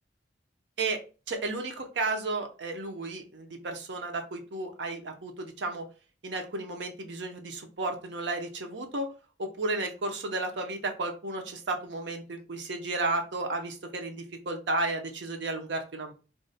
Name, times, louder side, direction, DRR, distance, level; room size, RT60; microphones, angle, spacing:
voice 1, 1.3-5.8 6.2-9.1 9.4-16.1, right 2 dB, 80° right, 4 dB, 0.6 m, -33 dB
2.5 x 2.1 x 3.9 m, 0.34 s
head